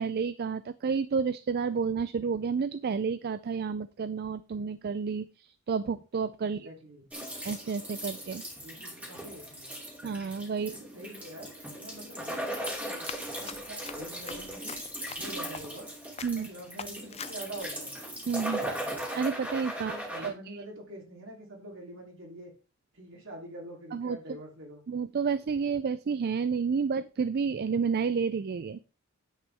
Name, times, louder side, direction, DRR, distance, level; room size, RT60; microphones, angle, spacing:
voice 1, 0.0-6.7 7.4-8.4 10.0-10.7 16.2-16.5 18.3-18.7 19.2-20.6 23.9-24.2 24.9-28.8, right 5 dB, 50° right, 15 dB, 0.4 m, -30 dB
voice 2, 6.4-7.1 8.6-9.8 10.6-11.5 11.8-13.1 13.4-14.8 15.2-15.9 16.3-18.0 19.8-22.5 22.9-24.8, right 1 dB, 65° right, 1 dB, 3.2 m, -45 dB
sound 1, 7.1-20.3, right 1 dB, 5° right, 2.6 m, -38 dB
Run, 12.3-15.9 16.2-16.5 16.8-17.6, left 7 dB, 30° left, 0.4 m, -44 dB
9.8 x 8.4 x 3.5 m, 0.33 s
head